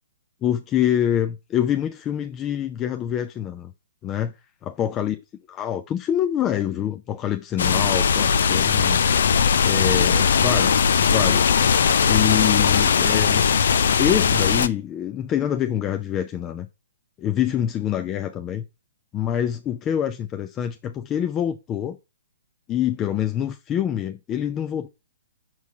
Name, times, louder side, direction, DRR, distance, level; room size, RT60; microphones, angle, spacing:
voice 1, 0.4-3.7 4.0-4.3 4.7-5.2 5.5-9.0 9.6-11.5 12.0-13.4 14.0-16.7 17.2-18.6 19.1-22.0 22.7-24.9, left 10 dB, 20° left, 0.6 m, -25 dB
sound 1, 7.6-14.7, left 6 dB, 60° left, 0.6 m, -19 dB
5.8 x 4.7 x 5.8 m
figure-of-eight pair, 125°, 0 cm